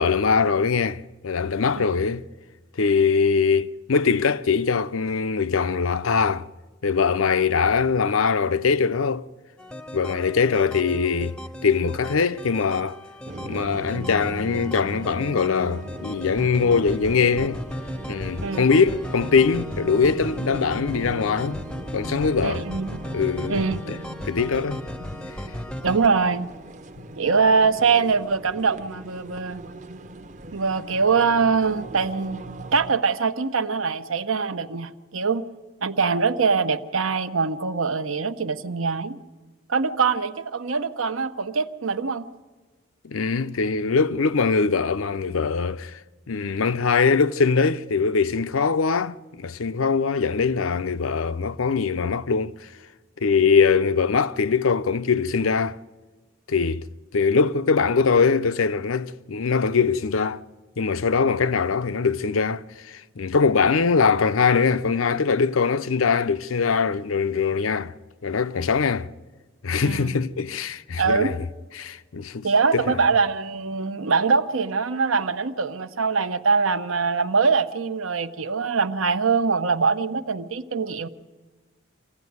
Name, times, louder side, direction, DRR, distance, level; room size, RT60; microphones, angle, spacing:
voice 1, 0.0-2.2 2.8-6.5 6.8-9.3 9.9-11.4 11.6-13.0 13.4-17.6 18.1-21.6 21.9-22.7 23.1-24.0 24.3-24.8 43.0-46.0 46.3-52.7 53.2-55.8 56.5-56.9 57.1-60.4 60.8-67.9 68.2-69.1 69.6-71.4 71.8-73.0, left 5 dB, 85° left, 0.6 m, -22 dB
sound 1, 9.6-26.1, equal, 5° left, 0.6 m, -36 dB
sound 2, 13.3-32.9, right 1 dB, 35° right, 0.8 m, -38 dB
voice 2, 22.4-23.0 23.5-23.8 25.8-26.5 27.2-29.6 30.5-35.4 35.8-39.2 39.7-42.2 69.8-70.2 71.0-71.3 72.4-81.1, right 5 dB, 85° right, 0.9 m, -23 dB
25.0 x 16.0 x 9.5 m
head